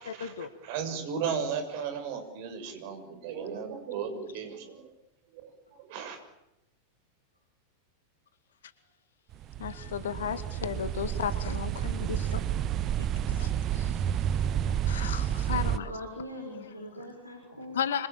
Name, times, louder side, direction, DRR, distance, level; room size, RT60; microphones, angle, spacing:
voice 1, 0.1-0.5 9.6-12.4 12.9-14.0 14.9-15.9 16.5-16.9 17.7-18.1, left 8 dB, 65° left, 13 dB, 2.1 m, -35 dB
voice 2, 0.6-4.9 5.3-5.5 5.8-6.2, right 6 dB, 50° right, 7 dB, 6.8 m, -35 dB
sound 1, 9.3-15.8, right 10 dB, 35° right, 1.1 m, -30 dB
voice 3, 15.5-17.8, left 1 dB, 90° right, 2 dB, 5.5 m, -42 dB
26.5 x 25.5 x 8.8 m, 0.88 s
figure-of-eight pair, 90°, 0 cm